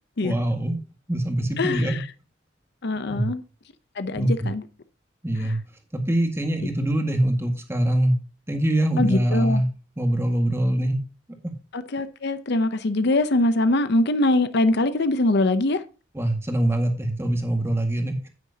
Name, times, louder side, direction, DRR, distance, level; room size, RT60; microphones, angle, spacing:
voice 1, 0.2-0.8 1.1-2.0 3.1-3.3 4.2-4.5 5.2-5.6 5.9-8.2 8.5-9.7 10.0-11.0 11.4-11.5 16.1-18.3, right 1 dB, 15° right, 1.8 m, -23 dB
voice 2, 1.6-2.0 2.8-3.4 4.0-4.6 5.4-5.5 9.0-9.6 11.7-15.8, left 2 dB, 60° left, 0.7 m, -23 dB
9.6 x 9.4 x 2.8 m
head